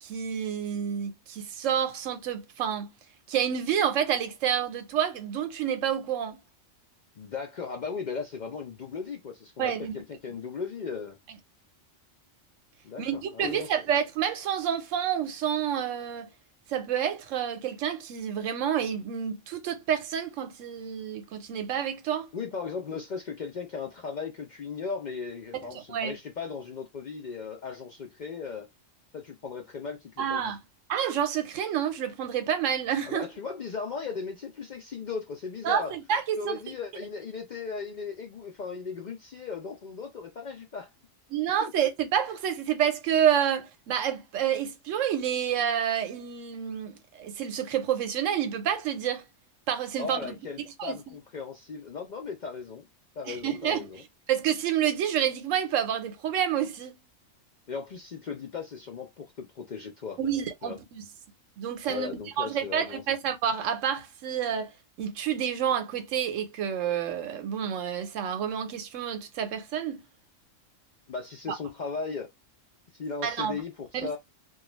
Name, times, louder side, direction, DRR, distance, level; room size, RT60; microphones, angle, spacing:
voice 1, 0.0-2.9 3.3-6.4 9.6-10.0 13.0-16.3 16.7-22.3 25.5-26.2 30.2-30.6 30.9-33.2 35.6-36.6 41.3-49.2 49.7-50.4 50.8-51.2 53.3-53.9 54.3-57.0 60.2-61.1 61.6-62.1 62.4-64.7 65.0-70.0 73.2-73.6 73.9-74.1, right 9 dB, 85° right, 1.0 m, -29 dB
voice 2, 7.2-11.2 12.8-13.7 22.3-28.7 29.1-30.5 33.1-35.9 36.4-40.9 50.0-52.9 53.2-54.0 57.7-60.2 60.6-60.8 61.9-63.0 71.1-72.3 72.9-74.2, left 5 dB, 60° left, 0.4 m, -37 dB
2.4 x 2.2 x 3.0 m
omnidirectional pair, 1.3 m